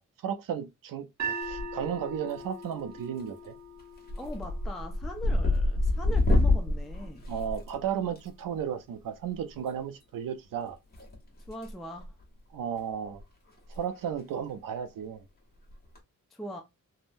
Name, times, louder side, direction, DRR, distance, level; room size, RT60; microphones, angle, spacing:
voice 1, 0.2-3.5 7.3-10.8 12.5-13.2 13.7-15.2, right 8 dB, 80° right, 0.5 m, -34 dB
sound 1, 1.2-7.4, right 3 dB, 55° right, 0.9 m, -41 dB
sound 2, 1.4-2.0 2.3-2.8 3.2-3.5 3.8-8.2 9.6-9.7 10.9-11.7 12.0-12.2 12.8-12.9 13.1-13.2 13.6-13.8 14.1-14.2 15.7-16.0, left 2 dB, 30° left, 1.1 m, -27 dB
voice 2, 4.2-7.2 11.5-12.1 16.3-16.6, equal, ahead, 0.4 m, -41 dB
3.6 x 2.1 x 2.5 m
wide cardioid pair, 150°, 33 cm